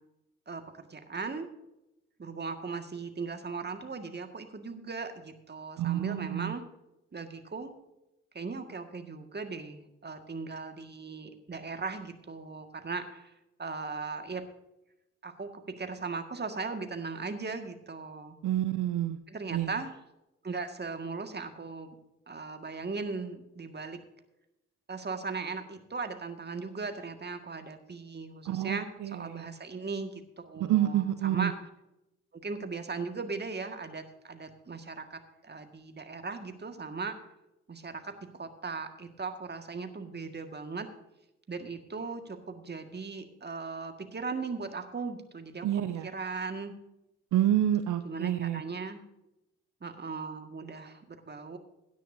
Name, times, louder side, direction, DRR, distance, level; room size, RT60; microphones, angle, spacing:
voice 1, 0.5-1.5 2.2-6.6 7.1-7.7 8.3-13.3 13.6-14.4 15.2-18.4 19.3-19.9 20.4-22.0 22.3-24.0 24.9-31.5 32.4-37.2 37.7-40.9 41.5-46.7 48.0-49.0 49.8-51.6, right 4 dB, 30° right, 7 dB, 1.8 m, -38 dB
voice 2, 5.8-6.5 18.4-19.2 19.5-19.7 28.5-29.5 30.7-31.5 45.6-46.1 47.3-48.6, right 12 dB, 60° right, 11 dB, 0.7 m, -28 dB
16.5 x 10.5 x 2.7 m, 0.89 s
hypercardioid pair, 45°, 35 cm